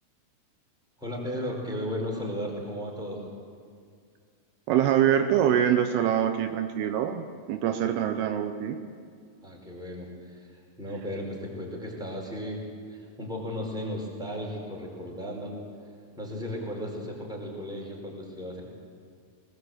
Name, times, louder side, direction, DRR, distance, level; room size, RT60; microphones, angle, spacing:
voice 1, 1.0-3.2 7.8-8.0 9.4-12.6 12.9-15.6 16.2-18.6, equal, ahead, -2 dB, 4.4 m, -35 dB
voice 2, 4.7-8.8, right 10 dB, 80° right, 7 dB, 2.8 m, -24 dB
21.0 x 20.0 x 7.9 m, 2.2 s
omnidirectional pair, 4.7 m